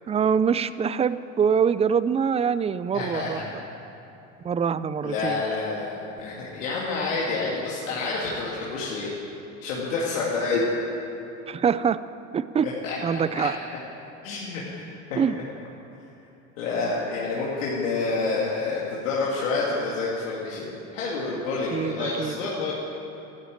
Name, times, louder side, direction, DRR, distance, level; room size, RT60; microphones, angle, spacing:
voice 1, 0.1-3.4 4.4-5.4 11.5-12.0 12.3-12.7 13.0-13.6 15.2-15.3 21.7-22.3 22.6-22.7, right 7 dB, 20° right, 15 dB, 0.3 m, -24 dB
voice 2, 2.9-3.5 5.0-9.1 9.6-10.7 12.8-13.2 14.2-14.6 16.6-22.7, left 3 dB, 85° left, -5 dB, 2.6 m, -28 dB
12.0 x 11.0 x 9.1 m, 3.0 s
supercardioid pair, 105°, 38 cm